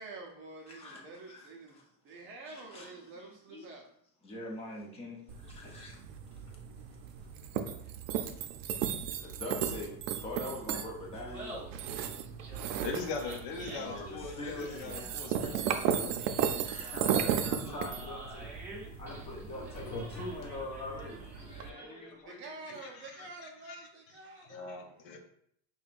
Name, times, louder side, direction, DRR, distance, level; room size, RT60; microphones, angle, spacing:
voice 1, 0.0-3.9 22.2-24.6, right 3 dB, 35° right, 0 dB, 0.5 m, -48 dB
voice 2, 0.7-1.8 2.4-3.8 4.2-6.1 6.3-6.5 9.1-9.9 10.2-11.6 13.7-16.0 16.6-18.5 19.0-22.4 24.5-25.2, left 2 dB, 15° left, -2 dB, 0.6 m, -44 dB
sound 1, 5.3-21.7, right 8 dB, 85° right, 0.5 m, -36 dB
Laughter, 11.1-22.2, right 1 dB, 5° right, 1.2 m, -49 dB
voice 3, 12.8-16.2 16.5-16.9 17.7-17.8 22.7-23.3 23.6-23.8 24.4-24.8 25.0-25.2, left 4 dB, 60° left, 3 dB, 0.7 m, -41 dB
sound 2, 14.5-20.5, left 2 dB, 85° left, 0.9 m, -49 dB
5.4 x 2.3 x 2.4 m, 0.69 s
cardioid pair, 170°, 36 cm